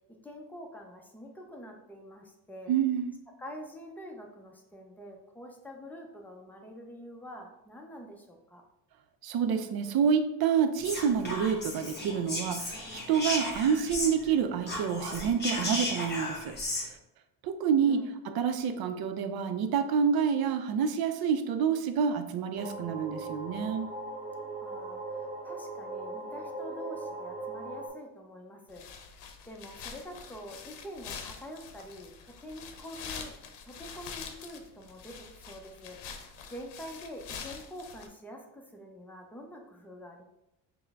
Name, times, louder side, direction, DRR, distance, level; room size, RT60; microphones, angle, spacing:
voice 1, 0.2-2.7 3.4-8.6 17.8-18.1 24.6-28.9 29.5-32.1 32.4-33.3 33.6-40.2, equal, 5° left, 1 dB, 0.5 m, -46 dB
voice 2, 2.7-3.1 9.2-16.6 17.4-23.9, right 7 dB, 65° right, 9 dB, 0.5 m, -28 dB
Whispering, 10.8-14.4 14.6-16.9, left 1 dB, 25° left, 1.2 m, -35 dB
sound 1, 22.5-27.9, right 2 dB, 20° right, 1.2 m, -39 dB
sound 2, 28.7-38.1, left 6 dB, 85° left, 0.7 m, -45 dB
5.6 x 2.1 x 3.4 m, 0.89 s
cardioid pair, 125°, 40 cm